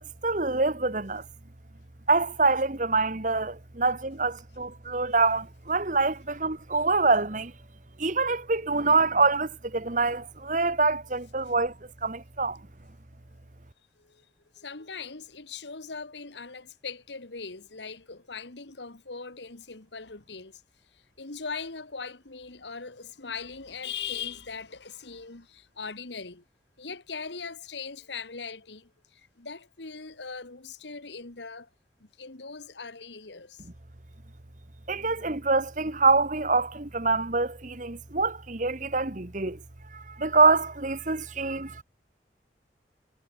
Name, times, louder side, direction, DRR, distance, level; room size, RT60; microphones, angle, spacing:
voice 1, 0.2-1.2 2.1-7.5 8.0-11.7 12.0-12.6 34.9-39.6 39.9-41.8, right 3 dB, 45° right, 1.5 m, -25 dB
voice 2, 14.5-20.6 21.2-26.4 26.8-31.7 32.0-33.7, left 5 dB, 80° left, 1.9 m, -40 dB
head